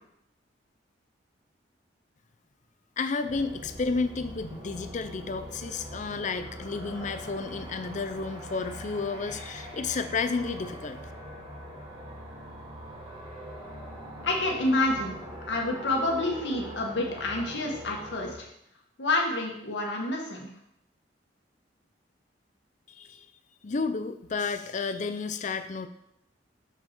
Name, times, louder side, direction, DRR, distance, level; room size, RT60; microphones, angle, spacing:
voice 1, 3.0-11.0 22.9-23.3 23.6-25.9, left 4 dB, 40° left, 9 dB, 0.5 m, -31 dB
sound 1, 3.3-18.3, equal, 25° right, 2.1 m, -42 dB
voice 2, 14.2-15.1 15.5-18.5 19.0-20.5, left 2 dB, 70° left, 0 dB, 1.8 m, -28 dB
6.8 x 6.1 x 4.5 m, 0.77 s
head